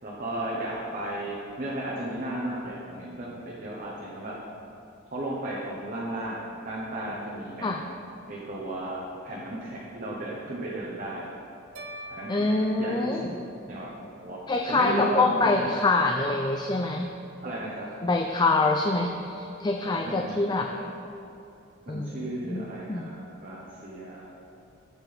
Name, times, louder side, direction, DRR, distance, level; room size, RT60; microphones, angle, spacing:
voice 1, 0.0-4.4 5.1-7.8 8.3-11.2 12.1-13.3 13.7-14.4 14.7-15.9 17.4-17.9 19.8-20.9 21.8-24.3, right 1 dB, 45° right, -6 dB, 1.2 m, -34 dB
sound 1, 11.8-14.0, right 1 dB, 70° right, 0.9 m, -45 dB
voice 2, 12.3-13.3 14.5-17.1 18.0-20.7 21.9-23.1, left 3 dB, 20° left, 3 dB, 0.4 m, -25 dB
14.5 x 5.9 x 3.5 m, 2.7 s
head